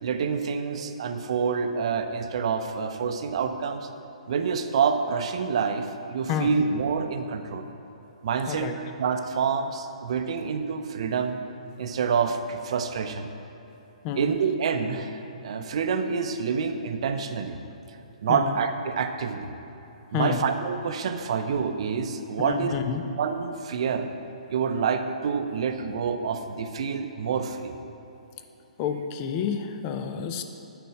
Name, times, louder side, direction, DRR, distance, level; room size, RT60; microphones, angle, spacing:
voice 1, 0.0-3.9 4.3-7.7 8.2-8.7 9.0-11.4 11.8-13.3 14.1-17.6 18.2-19.5 20.1-22.8 23.2-24.1 24.5-27.7, right 6 dB, 50° right, 7 dB, 0.6 m, -27 dB
voice 2, 8.5-8.8 14.0-14.3 18.3-18.6 20.1-20.4 22.4-23.0 28.8-30.4, left 8 dB, 30° left, 7 dB, 0.6 m, -29 dB
9.3 x 4.5 x 6.4 m, 2.9 s
figure-of-eight pair, 125°, 4 cm